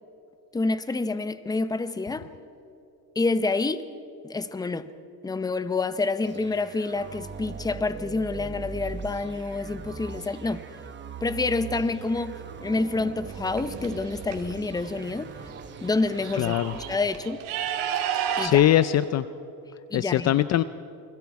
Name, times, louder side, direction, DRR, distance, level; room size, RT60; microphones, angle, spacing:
voice 1, 0.5-2.3 3.2-3.9 4.2-4.9 5.2-10.7 11.2-15.3 15.8-17.4 18.4-18.6 19.9-20.4, left 3 dB, 10° left, 12 dB, 0.8 m, -28 dB
sound 1, 6.2-17.3, right 5 dB, 25° right, 1.1 m, -40 dB
sound 2, 13.3-14.3 15.5-15.6 15.9-18.5, right 9 dB, 75° right, 3.0 m, -31 dB
voice 2, 16.4-16.7 18.4-19.2 19.9-20.6, left 12 dB, 40° left, 14 dB, 0.5 m, -21 dB
29.0 x 21.0 x 4.7 m, 2.8 s
cardioid pair, 130°, 42 cm